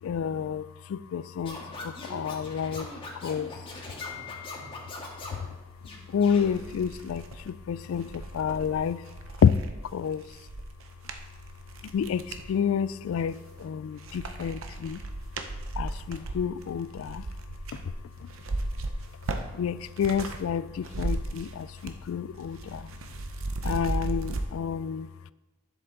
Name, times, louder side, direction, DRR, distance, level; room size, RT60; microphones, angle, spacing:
voice 1, 0.0-10.5 11.8-15.1 15.7-18.3 18.6-23.2 23.5-25.3, left 7 dB, 90° left, 18 dB, 0.3 m, -30 dB
Scratching (performance technique), 1.5-5.5 5.8-6.5, left 2 dB, 25° left, 1.7 m, -41 dB
sound 1, 5.8-5.9 6.3-12.5 13.1-13.7 14.0-20.4 20.7-22.1 22.3-24.5, right 2 dB, 85° right, 0.8 m, -36 dB
11.0 x 7.0 x 3.8 m, 1.2 s
head